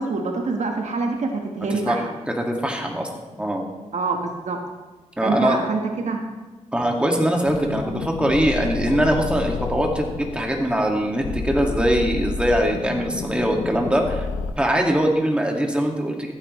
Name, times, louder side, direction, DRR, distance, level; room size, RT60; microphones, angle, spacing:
voice 1, 0.0-2.1 3.9-4.6 5.2-6.2, right 3 dB, 65° right, 3 dB, 1.3 m, -25 dB
voice 2, 2.3-3.6 5.2-5.6 6.7-14.3 14.6-16.3, right 1 dB, 10° right, 1 dB, 2.0 m, -22 dB
sound 1, 7.4-14.5, left 5 dB, 80° left, 0.9 m, -30 dB
14.5 x 9.2 x 3.2 m, 1.2 s
cardioid pair, 70°, 13 cm